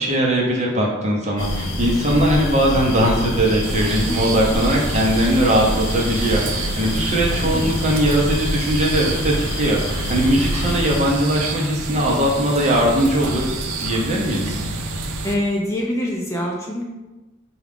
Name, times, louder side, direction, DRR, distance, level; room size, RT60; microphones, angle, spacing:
voice 1, 0.0-14.6, equal, 35° right, -2 dB, 0.7 m, -20 dB
sound 1, 1.4-11.0, left 1 dB, 70° left, 0.6 m, -26 dB
sound 2, 3.6-15.4, right 3 dB, 85° right, 0.5 m, -29 dB
voice 2, 3.8-4.2 7.4-7.7 15.2-16.8, left 1 dB, 15° left, -2 dB, 0.4 m, -25 dB
4.6 x 2.3 x 3.5 m, 1.1 s
head